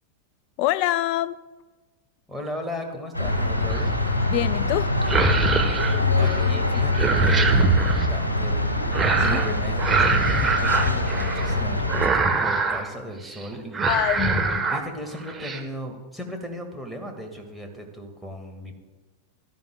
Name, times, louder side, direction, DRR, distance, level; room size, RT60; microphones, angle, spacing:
voice 1, 0.6-1.4 4.3-4.9 9.1-9.4 13.9-14.7, left 14 dB, 45° left, 17 dB, 0.4 m, -25 dB
voice 2, 2.3-4.0 6.2-8.9 9.2-13.9 14.7-18.7, equal, 5° left, 3 dB, 1.9 m, -36 dB
sound 1, 3.1-12.1, left 1 dB, 80° left, 1.5 m, -24 dB
sound 2, 3.7-4.1 4.9-6.5 6.8-8.1 8.9-9.5 9.8-11.6 11.9-12.9 13.2-13.4 13.7-14.8 15.2-15.6, right 4 dB, 15° right, 1.1 m, -24 dB
16.5 x 12.0 x 2.3 m, 1.2 s
figure-of-eight pair, 90°, 0 cm